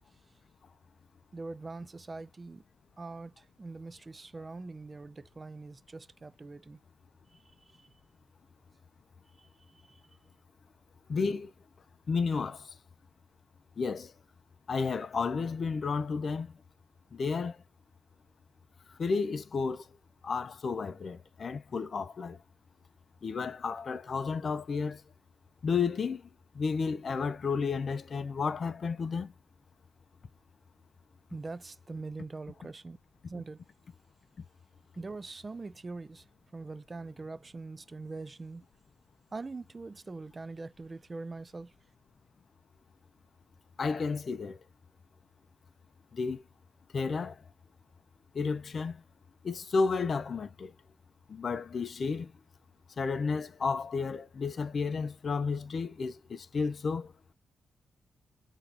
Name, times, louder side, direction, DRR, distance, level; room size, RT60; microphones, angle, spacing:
voice 1, 1.3-2.6 3.0-6.8 7.3-7.4 7.7-7.9 9.4-10.0 31.3-33.0 33.3-33.6 35.0-36.3 36.5-38.6 39.3-41.7, right 3 dB, 30° right, 0.3 m, -43 dB
voice 2, 11.1-11.5 12.1-12.7 13.8-14.1 14.7-16.6 17.1-17.6 18.9-19.9 20.2-22.4 23.2-25.0 25.6-26.3 26.5-29.3 43.8-44.6 46.1-46.4 46.9-47.4 48.3-49.0 49.4-50.7 51.3-52.3 53.0-57.1, left 5 dB, 50° left, 0.5 m, -32 dB
3.6 x 3.0 x 2.8 m
cardioid pair, 95°, 0 cm